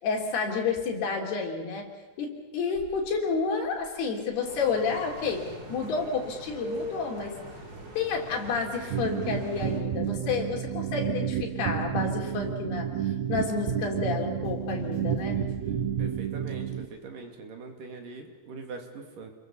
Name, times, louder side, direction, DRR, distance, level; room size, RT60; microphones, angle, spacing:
voice 1, 0.0-1.9 2.2-7.4 8.0-12.9 13.3-15.4, left 5 dB, 70° left, 1 dB, 5.4 m, -30 dB
Crackle, 2.7-16.3, left 1 dB, 50° left, 6.1 m, -47 dB
sound 1, 4.4-9.8, equal, 25° right, 3.1 m, -41 dB
sound 2, 8.9-16.8, right 9 dB, 75° right, 1.7 m, -30 dB
voice 2, 16.0-19.3, right 4 dB, 55° right, 3 dB, 4.1 m, -42 dB
29.5 x 22.0 x 7.1 m, 1.2 s
omnidirectional pair, 4.8 m